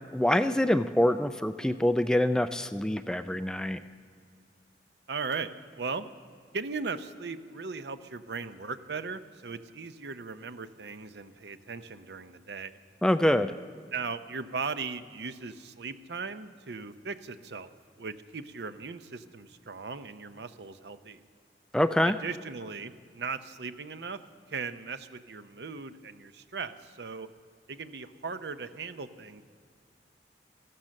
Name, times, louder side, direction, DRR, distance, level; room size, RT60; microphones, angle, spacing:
voice 1, 0.1-3.8 13.0-13.5 21.7-22.1, left 1 dB, 5° left, 10 dB, 0.3 m, -25 dB
voice 2, 5.1-5.5 5.8-6.1 6.5-12.8 13.9-17.7 18.0-21.3 22.0-24.2 24.5-27.3 27.7-29.4, right 4 dB, 75° right, 11 dB, 0.7 m, -38 dB
15.0 x 13.5 x 6.5 m, 2.1 s
head